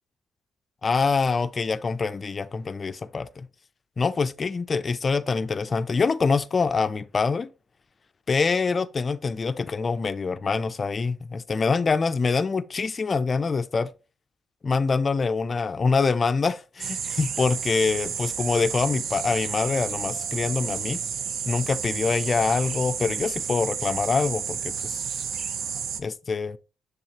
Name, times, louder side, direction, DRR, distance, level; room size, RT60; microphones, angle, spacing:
voice 1, 0.8-3.5 4.0-7.5 8.3-13.9 14.6-21.0 21.5-25.0 26.0-26.6, left 4 dB, 35° left, 0.4 m, -25 dB
sound 1, 16.8-26.0, right 7 dB, 65° right, 0.6 m, -31 dB
10.0 x 3.4 x 2.9 m
cardioid pair, 90°, 0 cm